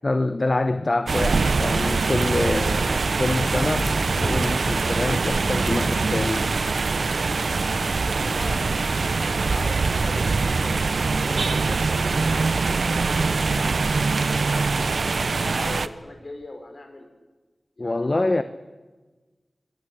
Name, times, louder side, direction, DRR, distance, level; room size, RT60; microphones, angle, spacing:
voice 1, 0.0-3.9 4.2-6.5 17.8-18.4, left 2 dB, 40° left, 1.0 m, -25 dB
sound 1, 1.1-15.9, right 4 dB, 85° right, 0.9 m, -23 dB
sound 2, 3.3-7.1, equal, 15° right, 2.8 m, -34 dB
voice 2, 7.9-8.9 9.2-10.8 11.0-15.0 15.4-17.1 17.8-18.4, left 2 dB, 55° left, 5.4 m, -40 dB
25.5 x 20.0 x 8.5 m
wide cardioid pair, 65°, 0 cm